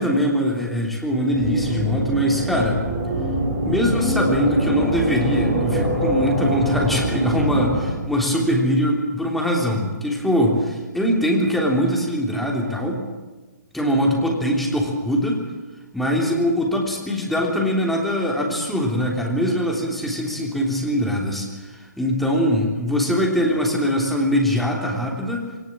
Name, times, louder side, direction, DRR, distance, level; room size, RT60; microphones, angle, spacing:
voice 1, 0.0-2.8 3.6-13.0 13.7-15.5 15.9-25.5, equal, ahead, -2 dB, 3.4 m, -22 dB
sound 1, 1.3-7.9, right 1 dB, 25° right, 7.7 m, -24 dB
21.5 x 19.0 x 7.5 m, 1.3 s
figure-of-eight pair, 135°, 10 cm